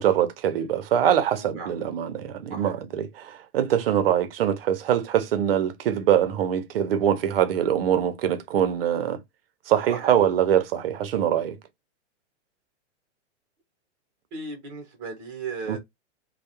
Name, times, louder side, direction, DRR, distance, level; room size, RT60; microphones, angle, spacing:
voice 1, 0.0-9.2 9.7-11.6 15.7-15.8, right 10 dB, 55° right, 0.5 m, -23 dB
voice 2, 1.4-1.7 2.5-2.8 9.9-10.1 14.3-15.8, right 4 dB, 20° right, 0.7 m, -36 dB
2.2 x 2.0 x 2.8 m
supercardioid pair, 175°, 36 cm